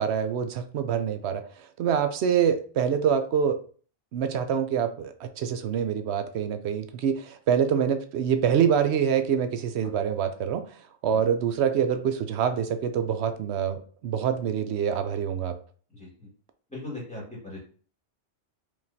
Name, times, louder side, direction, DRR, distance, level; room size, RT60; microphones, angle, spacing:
voice 1, 0.0-1.4 1.8-3.6 4.1-10.6 11.0-15.6, right 8 dB, 75° right, 9 dB, 0.8 m, -25 dB
voice 2, 15.9-16.3 16.7-17.6, left 2 dB, 5° left, -5 dB, 1.8 m, -39 dB
4.8 x 3.1 x 2.7 m, 0.42 s
omnidirectional pair, 1.2 m